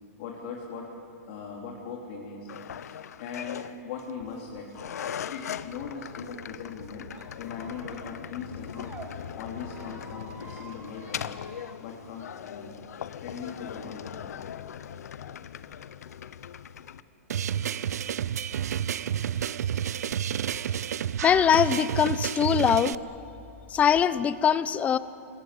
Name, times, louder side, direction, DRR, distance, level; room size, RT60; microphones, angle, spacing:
voice 1, 0.2-0.9 1.2-7.1 7.4-9.0 9.3-11.5 11.8-12.7 13.2-14.5, left 5 dB, 50° left, -1 dB, 3.6 m, -40 dB
sound 1, 2.5-17.0, left 9 dB, 85° left, 0.9 m, -40 dB
Squeak, 7.1-9.1 9.6-11.7, right 5 dB, 15° right, 2.5 m, -49 dB
sound 2, 17.3-22.9, right 9 dB, 90° right, 0.6 m, -30 dB
voice 2, 21.2-23.0 23.7-25.0, left 8 dB, 15° left, 15 dB, 0.7 m, -22 dB
26.5 x 22.0 x 8.6 m, 2.6 s
hypercardioid pair, 155°, 8 cm